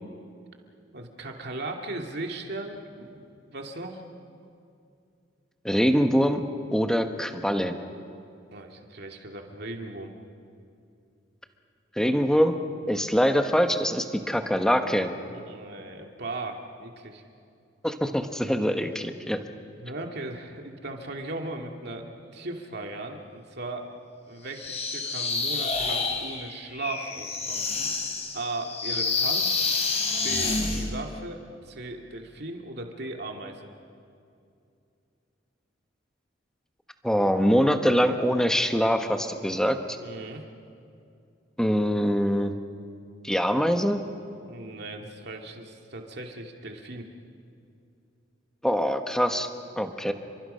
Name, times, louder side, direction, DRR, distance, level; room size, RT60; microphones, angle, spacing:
voice 1, 0.9-4.0 8.5-10.1 15.3-17.2 19.8-23.9 24.3-27.7 28.3-29.6 30.1-33.7 40.0-40.4 44.4-47.1, right 2 dB, 60° right, 2 dB, 2.4 m, -37 dB
voice 2, 5.6-6.4 6.7-7.8 12.0-12.6 12.9-15.1 17.8-19.4 37.0-39.8 41.6-42.5 43.2-44.0 48.6-49.5 49.8-50.1, equal, 5° left, 6 dB, 1.2 m, -23 dB
sound 1, 24.6-30.9, left 4 dB, 35° left, 3.5 m, -28 dB
30.0 x 23.5 x 5.6 m, 2.5 s
head